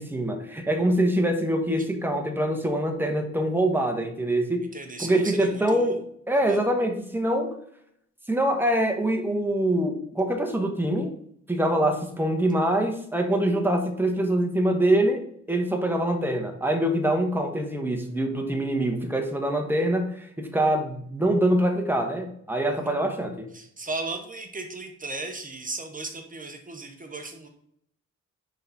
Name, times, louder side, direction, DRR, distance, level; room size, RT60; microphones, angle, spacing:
voice 1, 0.0-4.7 5.0-6.0 6.3-7.5 8.3-11.1 11.5-23.5, right 1 dB, 5° right, 3 dB, 1.3 m, -24 dB
voice 2, 4.7-6.0 6.5-6.6 22.7-23.0 23.5-27.5, right 3 dB, 30° right, 4 dB, 1.0 m, -36 dB
10.5 x 3.9 x 4.1 m, 0.69 s
wide cardioid pair, 140°, 29 cm